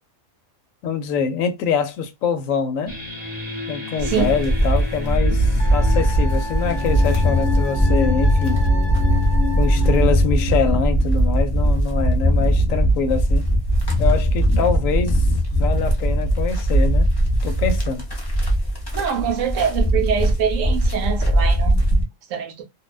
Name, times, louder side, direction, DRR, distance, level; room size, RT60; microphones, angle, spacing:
voice 1, 0.8-3.0 3.7-8.6 9.6-13.5 14.0-17.1 17.4-18.0, left 6 dB, 75° left, 1.0 m, -24 dB
sound 1, 2.9-12.2, left 6 dB, 10° right, 0.8 m, -28 dB
sound 2, 4.0-22.0, right 1 dB, 25° left, 0.5 m, -19 dB
voice 2, 4.0-4.4 18.9-22.6, right 7 dB, 75° right, 0.9 m, -25 dB
Wind instrument woodwind instrument, 5.6-10.1, left 1 dB, 45° left, 1.0 m, -35 dB
2.5 x 2.1 x 2.3 m
omnidirectional pair, 1.4 m